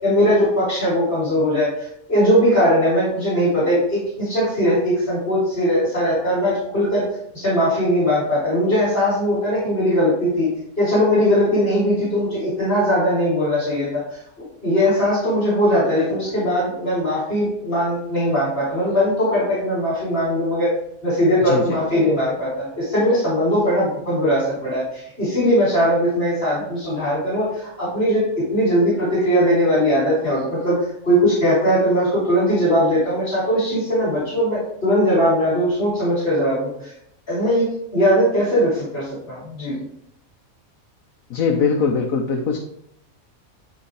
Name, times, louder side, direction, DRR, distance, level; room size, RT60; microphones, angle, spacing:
voice 1, 0.0-7.0 7.3-10.5 10.8-14.2 14.6-20.7 21.0-28.2 28.5-30.8 31.0-36.9 37.3-39.8, equal, 45° left, -9 dB, 3.4 m, -20 dB
voice 2, 21.5-21.8 41.3-42.6, left 5 dB, 85° left, 1 dB, 1.2 m, -21 dB
10.5 x 3.6 x 3.3 m, 0.74 s
omnidirectional pair, 1.4 m